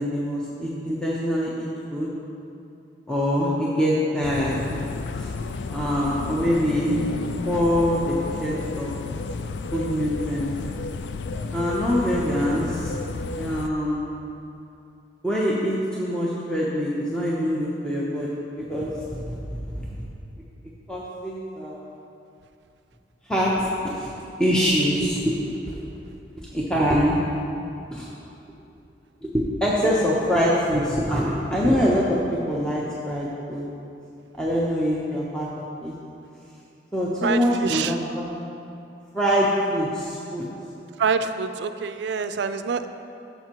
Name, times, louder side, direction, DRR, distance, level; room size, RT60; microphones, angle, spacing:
voice 1, 0.0-2.1 3.1-4.6 5.2-5.3 5.7-7.0 7.5-8.9 9.7-10.5 11.5-12.9 13.4-14.0 15.2-19.9 20.9-21.8 23.2-24.1 24.4-25.3 25.7-25.8 26.4-27.2 27.9-28.1 29.2-33.6 34.4-35.5 35.8-35.9 36.9-38.4 39.1-40.5, equal, 5° left, -6 dB, 0.7 m, -24 dB
sound 1, 4.2-13.7, left 3 dB, 75° left, 0.4 m, -32 dB
voice 2, 37.2-38.0 41.0-42.9, right 5 dB, 70° right, 10 dB, 0.4 m, -26 dB
12.0 x 6.8 x 2.9 m, 2.7 s
head